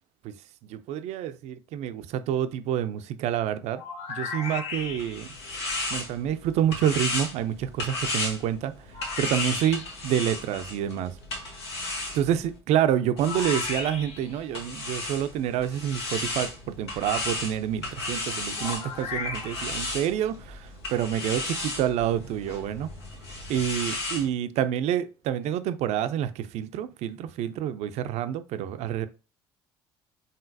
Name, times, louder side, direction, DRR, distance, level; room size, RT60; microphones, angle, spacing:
voice 1, 0.6-3.8 4.1-5.3 5.9-8.7 9.2-11.1 12.1-22.9 23.5-29.1, right 10 dB, 55° right, 0.4 m, -28 dB
sound 1, 3.8-5.4 8.9-10.1 13.2-14.4 18.6-19.9, left 4 dB, 55° left, 0.8 m, -36 dB
sound 2, 4.8-12.6 13.2-24.3, left 2 dB, 80° left, 1.0 m, -34 dB
4.1 x 3.8 x 2.5 m
figure-of-eight pair, 55°, 13 cm